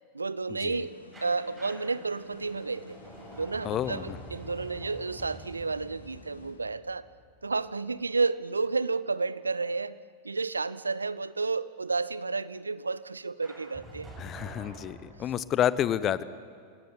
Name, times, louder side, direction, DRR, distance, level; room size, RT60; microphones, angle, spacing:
voice 1, 0.1-3.0 3.4-7.1 7.4-10.0 10.2-14.1, right 4 dB, 80° right, 18 dB, 0.6 m, -31 dB
sound 1, 0.5-7.1, left 4 dB, 70° left, 1.9 m, -52 dB
sound 2, 1.1-7.9 13.4-15.6, right 1 dB, 15° right, 8.0 m, -48 dB
voice 2, 3.6-4.2 14.2-16.2, left 10 dB, 30° left, 17 dB, 0.9 m, -29 dB
27.5 x 17.5 x 9.7 m, 2.2 s
figure-of-eight pair, 90°, 0 cm